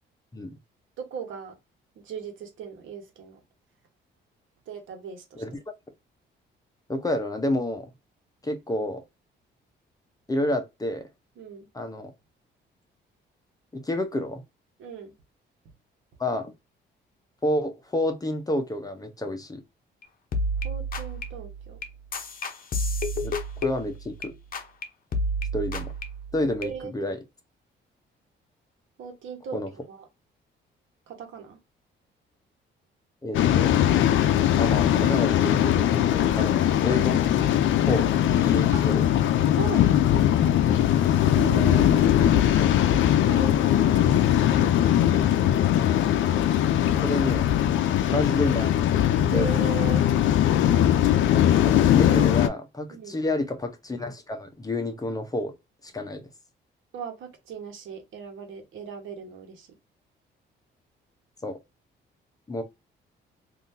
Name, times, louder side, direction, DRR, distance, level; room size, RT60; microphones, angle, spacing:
voice 1, 1.0-1.6 2.0-3.4 4.7-5.4 11.4-11.7 14.8-15.1 20.6-21.8 26.6-26.9 29.0-30.1 31.1-31.6 38.7-38.8 39.5-40.0 41.3-41.9 43.2-45.5 49.3-50.1 52.9-53.2 56.9-59.7, right 6 dB, 80° right, 1.2 m, -38 dB
voice 2, 6.9-7.9 8.4-9.0 10.3-11.0 11.7-12.1 13.7-14.4 16.2-16.5 17.4-19.6 23.2-23.3 23.6-24.3 25.5-25.9 26.3-27.2 29.5-29.7 33.2-33.8 34.6-37.2 37.8-39.0 41.9-42.7 47.0-47.5 48.1-48.7 49.3-49.5 51.6-55.5 55.8-56.2 61.4-61.6 62.5-62.6, left 1 dB, 20° left, 0.9 m, -29 dB
sound 1, 20.0-20.1 20.3-24.3 24.5-24.8 25.1-26.7, equal, 45° left, 0.8 m, -30 dB
Waves surf, 33.3-52.5, left 11 dB, 75° left, 0.5 m, -21 dB
3.5 x 2.7 x 2.7 m
cardioid pair, 90°, 20 cm